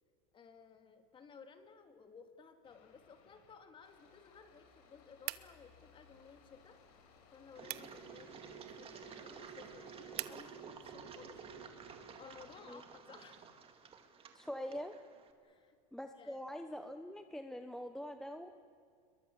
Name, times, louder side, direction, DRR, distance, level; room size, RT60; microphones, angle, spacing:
voice 1, 0.3-6.8 7.3-11.4 12.2-13.5 15.4-15.8 16.1-16.4, left 5 dB, 25° left, 6 dB, 2.4 m, -57 dB
sound 1, 2.6-3.5 3.8-10.3 10.8-12.6, left 6 dB, 70° left, 5.7 m, -64 dB
sound 2, 5.2-10.4, right 19 dB, 55° right, 1.0 m, -49 dB
Engine, 7.5-15.3, right 6 dB, 25° right, 2.3 m, -52 dB
voice 2, 14.3-14.9 15.9-18.5, equal, ahead, 7 dB, 0.9 m, -44 dB
27.5 x 22.5 x 7.2 m, 2.2 s
supercardioid pair, 130°, 20 cm